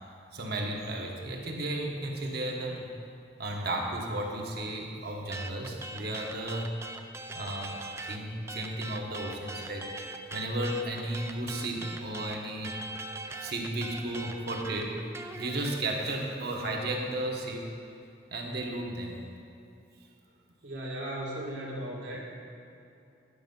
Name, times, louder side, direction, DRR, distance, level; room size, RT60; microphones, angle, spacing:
voice 1, 0.3-2.9 3.4-6.7 7.3-7.7 8.0-9.9 10.3-12.8 13.4-15.0 15.3-17.7 18.3-19.1, right 1 dB, 55° right, 0 dB, 1.2 m, -34 dB
sound 1, 5.3-8.2 8.5-15.8, right 2 dB, 15° right, 0.4 m, -41 dB
voice 2, 20.6-22.4, right 1 dB, 75° right, -4 dB, 2.0 m, -37 dB
10.0 x 6.4 x 5.4 m, 2.6 s
head